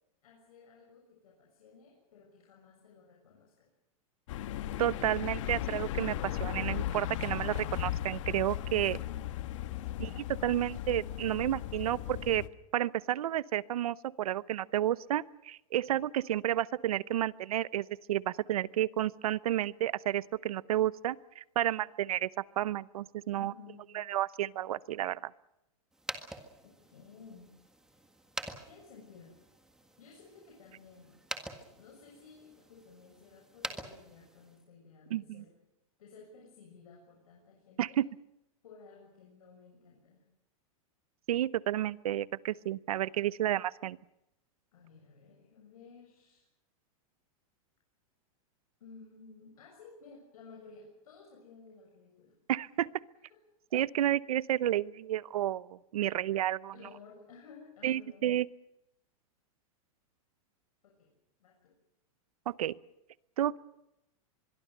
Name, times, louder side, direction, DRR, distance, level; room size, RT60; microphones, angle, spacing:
voice 1, 0.2-3.7 8.9-9.3 9.8-10.1 23.3-24.1 26.6-27.5 28.6-29.4 30.0-31.2 31.5-35.6 36.0-38.0 38.6-40.2 44.7-46.5 48.8-52.3 52.7-53.4 56.7-58.3 60.8-61.1 61.4-61.8, left 5 dB, 85° left, 0 dB, 6.9 m, -55 dB
sound 1, 4.3-12.5, left 12 dB, 60° left, 1.4 m, -36 dB
voice 2, 4.8-9.0 10.0-10.1 10.4-12.4 12.7-22.3 22.6-23.5 23.9-25.3 35.1-35.4 37.8-38.1 41.3-44.0 52.5-52.9 53.7-56.7 57.8-58.5 62.5-62.8 63.4-63.6, right 12 dB, 90° right, 19 dB, 0.8 m, -31 dB
sound 2, 25.9-34.6, right 1 dB, 5° right, 1.7 m, -46 dB
25.0 x 22.5 x 6.7 m, 0.86 s
supercardioid pair, 160°, 18 cm